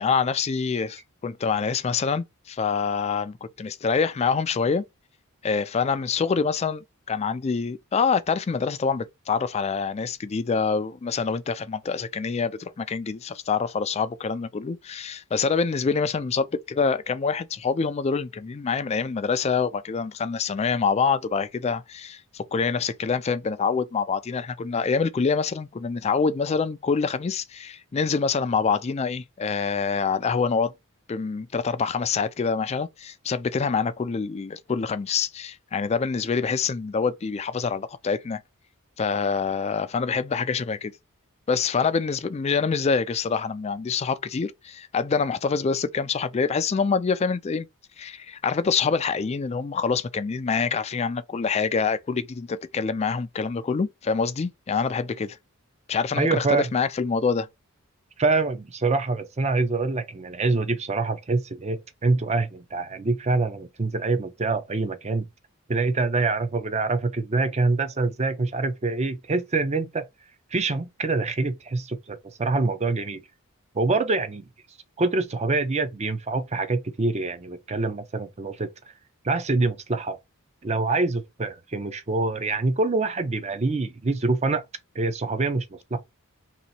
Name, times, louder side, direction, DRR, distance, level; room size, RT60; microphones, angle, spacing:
voice 1, 0.0-4.8 5.4-30.7 31.1-38.4 39.0-40.9 41.5-47.7 48.0-55.4 55.9-57.5, left 5 dB, 30° left, 0.3 m, -26 dB
voice 2, 56.2-56.7 58.2-65.3 65.7-70.1 70.5-73.2 73.7-74.5 75.0-78.7 79.2-80.2 80.6-84.6 84.9-85.7 85.9-86.0, right 3 dB, 30° right, 0.5 m, -25 dB
3.0 x 2.9 x 4.1 m
head